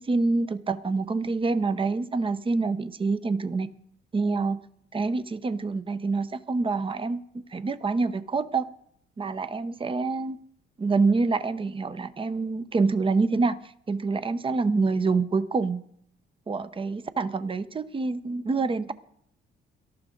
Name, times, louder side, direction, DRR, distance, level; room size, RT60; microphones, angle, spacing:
voice 1, 0.0-3.7 4.1-4.6 4.9-7.2 7.5-8.7 9.2-10.4 10.8-15.8 16.5-18.9, right 4 dB, 25° right, 12 dB, 0.8 m, -26 dB
18.5 x 13.0 x 3.9 m, 0.69 s
cardioid pair, 90°, 20 cm